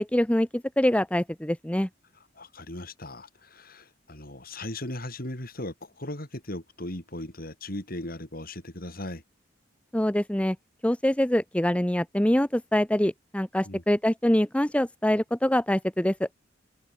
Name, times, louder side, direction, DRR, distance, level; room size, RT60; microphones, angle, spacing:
voice 1, 0.0-1.9 9.9-10.6 10.8-16.3, left 1 dB, 5° left, 0.8 m, -24 dB
voice 2, 2.4-9.2 13.6-13.8, left 1 dB, 55° left, 5.7 m, -38 dB
head